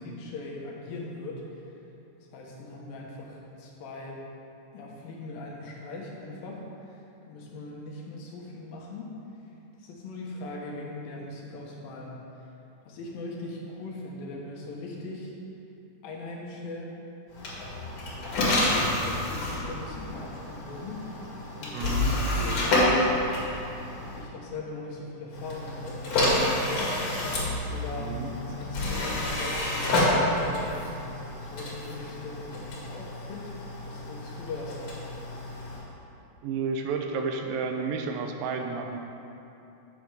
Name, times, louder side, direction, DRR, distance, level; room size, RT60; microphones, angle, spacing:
voice 1, 0.0-1.4 2.3-4.2 4.7-9.2 9.8-12.5 12.9-15.3 16.0-16.9 18.1-21.0 21.6-21.9 22.4-23.1 23.5-23.6 24.1-26.9 27.7-28.2 28.5-30.9 31.4-33.6 33.8-35.2, left 2 dB, 85° left, -2 dB, 3.0 m, -40 dB
sound 1, 17.3-24.3 25.3-35.8, left 1 dB, 55° left, 3.0 m, -29 dB
voice 2, 21.7-22.1 27.9-28.3 36.4-39.0, right 5 dB, 85° right, 4 dB, 2.4 m, -31 dB
9.2 x 6.5 x 4.8 m, 2.9 s
omnidirectional pair, 3.9 m